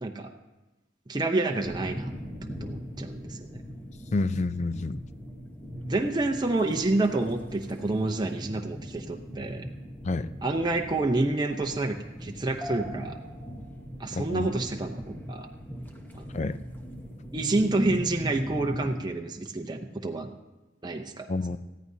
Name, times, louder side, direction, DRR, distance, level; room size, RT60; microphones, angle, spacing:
voice 1, 0.0-0.3 1.1-2.1 2.6-3.5 5.9-9.6 10.4-13.2 14.0-15.5 16.1-16.2 17.3-20.3 20.8-21.3, right 2 dB, 20° right, 3 dB, 0.7 m, -28 dB
sound 1, 1.6-19.0, equal, 10° left, 1.1 m, -40 dB
voice 2, 4.1-5.0 10.0-10.3 14.1-14.5 16.3-16.6 21.3-21.6, left 3 dB, 40° left, 13 dB, 0.4 m, -28 dB
20.0 x 14.0 x 2.8 m, 1.1 s
head